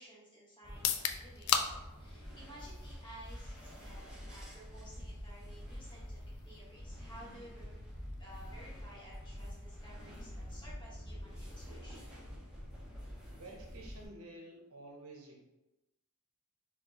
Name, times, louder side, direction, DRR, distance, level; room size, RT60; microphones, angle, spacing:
voice 1, 0.0-12.1, equal, 20° left, -7 dB, 1.4 m, -55 dB
sound 1, 0.6-14.1, equal, 5° right, 1.0 m, -47 dB
sound 2, 0.7-14.5, left 8 dB, 80° left, 0.4 m, -43 dB
voice 2, 13.3-15.4, right 2 dB, 70° right, 0 dB, 0.8 m, -51 dB
4.3 x 2.8 x 2.8 m, 0.99 s
head